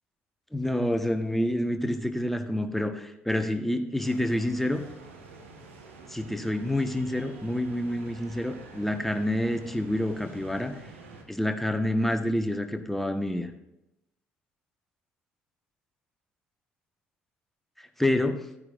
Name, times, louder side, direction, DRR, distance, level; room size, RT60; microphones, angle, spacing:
voice 1, 0.5-4.8 6.1-10.8 11.3-13.5 18.0-18.3, left 1 dB, 5° left, 6 dB, 1.3 m, -28 dB
sound 1, 4.0-11.2, right 3 dB, 85° right, 1.2 m, -48 dB
14.5 x 9.5 x 2.5 m, 0.86 s
hypercardioid pair, 50°, 7 cm